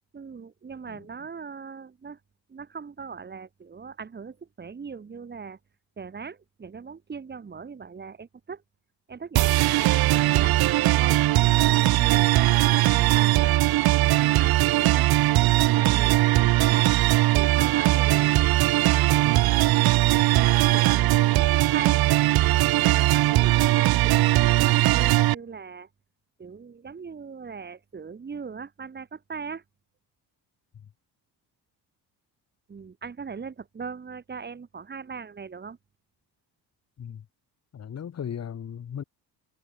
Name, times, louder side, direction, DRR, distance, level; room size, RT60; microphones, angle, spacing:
voice 1, 0.1-2.2 2.5-5.6 6.0-8.6 9.1-11.2 11.6-15.1 15.6-16.9 17.3-19.4 20.1-22.0 22.4-25.9 26.4-29.6 32.7-35.8, right 5 dB, 25° right, 5.7 m, -40 dB
sound 1, 9.4-25.3, right 17 dB, 65° right, 0.7 m, -20 dB
voice 2, 37.7-39.0, left 8 dB, 40° left, 5.6 m, -36 dB
cardioid pair, 170°, 40 cm